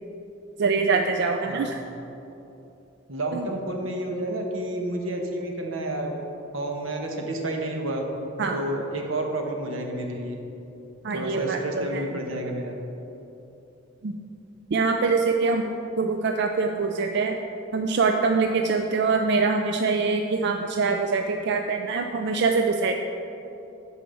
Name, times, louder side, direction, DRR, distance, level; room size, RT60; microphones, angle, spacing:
voice 1, 0.6-1.8 3.3-3.5 8.4-8.6 11.0-12.0 14.0-14.1 14.7-17.4 17.7-22.9, right 4 dB, 60° right, 4 dB, 0.4 m, -24 dB
voice 2, 3.1-6.1 6.5-8.0 8.5-10.4 11.1-12.7, right 1 dB, 85° right, 2 dB, 1.2 m, -30 dB
10.0 x 4.7 x 6.9 m, 2.9 s
head